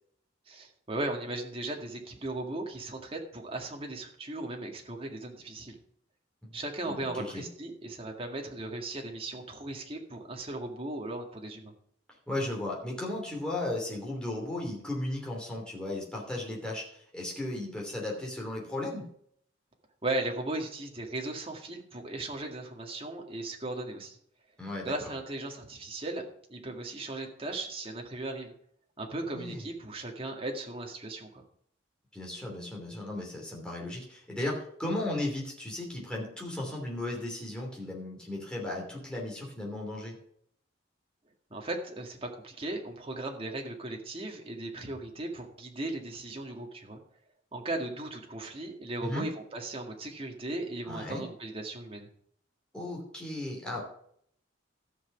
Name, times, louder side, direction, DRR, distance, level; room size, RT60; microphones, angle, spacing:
voice 1, 0.5-5.8 6.5-11.7 20.0-24.2 24.8-26.2 26.5-28.5 29.0-31.4 41.5-47.0 47.5-52.1, right 2 dB, 30° right, 2 dB, 2.0 m, -37 dB
voice 2, 6.8-7.4 12.3-19.1 24.6-24.9 29.2-29.7 32.1-40.2 49.0-49.2 50.9-51.2 52.7-53.8, left 1 dB, 5° left, -3 dB, 2.9 m, -35 dB
14.0 x 6.0 x 5.9 m, 0.66 s
head